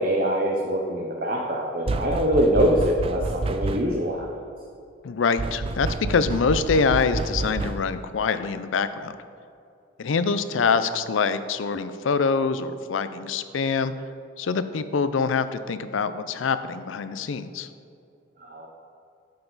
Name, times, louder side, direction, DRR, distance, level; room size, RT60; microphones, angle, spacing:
voice 1, 0.0-4.4 18.4-18.7, equal, 50° right, 0 dB, 0.7 m, -24 dB
sound 1, 1.9-4.1 5.4-8.0, right 3 dB, 30° right, 0.3 m, -29 dB
voice 2, 5.0-9.1 10.0-13.9 14.4-17.7, left 5 dB, 85° left, 12 dB, 0.5 m, -25 dB
9.3 x 6.9 x 4.0 m, 2.5 s
head